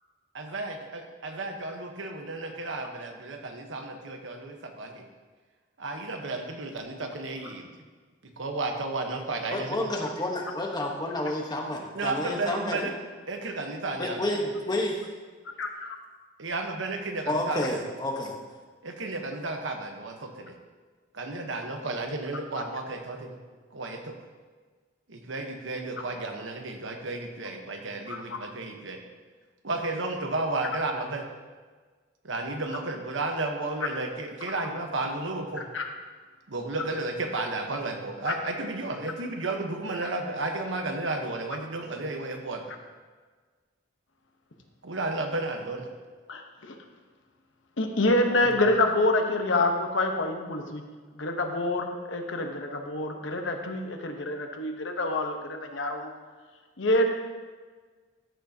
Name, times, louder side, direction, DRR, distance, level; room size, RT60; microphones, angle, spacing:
voice 1, 0.3-5.0 5.8-7.7 8.2-9.9 11.9-12.9 13.3-14.3 16.4-17.8 18.8-20.6 21.1-23.4 23.7-24.2 25.1-29.0 29.6-31.3 32.2-35.7 36.5-42.6 44.8-45.9 48.4-48.7, right 2 dB, 85° right, 4 dB, 1.0 m, -33 dB
voice 2, 9.5-12.9 14.0-15.0 17.3-18.3, left 1 dB, 20° left, 1 dB, 1.1 m, -30 dB
voice 3, 28.1-28.4 35.7-35.8 38.3-38.4 46.3-46.7 47.8-50.8 51.2-56.1 56.8-57.1, left 2 dB, 85° left, 4 dB, 1.0 m, -27 dB
14.0 x 6.5 x 2.8 m, 1.4 s
head